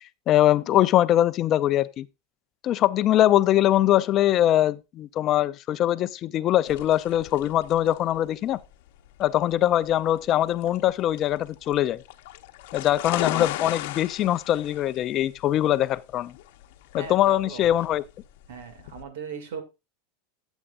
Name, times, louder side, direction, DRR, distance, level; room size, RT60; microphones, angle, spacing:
voice 1, 0.3-2.1 2.6-8.6 9.2-12.0 12.7-16.3 16.9-18.0, left 12 dB, 35° left, 0.4 m, -22 dB
sound 1, 6.7-19.0, left 15 dB, 65° left, 0.8 m, -37 dB
voice 2, 16.9-18.0 18.5-19.6, right 6 dB, 85° right, 2.3 m, -38 dB
12.0 x 8.1 x 2.5 m
supercardioid pair, 150°, 0 cm